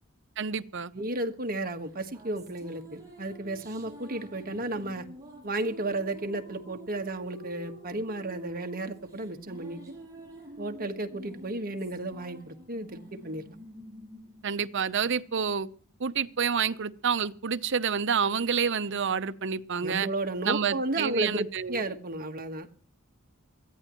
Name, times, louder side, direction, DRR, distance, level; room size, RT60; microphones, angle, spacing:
voice 1, 0.4-0.9 14.4-15.7 16.0-20.1 20.4-21.8, right 6 dB, 60° right, 12 dB, 0.8 m, -28 dB
voice 2, 0.9-5.1 5.4-9.8 10.6-13.4 19.8-22.7, right 2 dB, 45° right, 5 dB, 1.4 m, -33 dB
sound 1, 1.8-15.5, equal, 15° right, 7.3 m, -48 dB
21.0 x 14.5 x 3.0 m, 0.42 s
head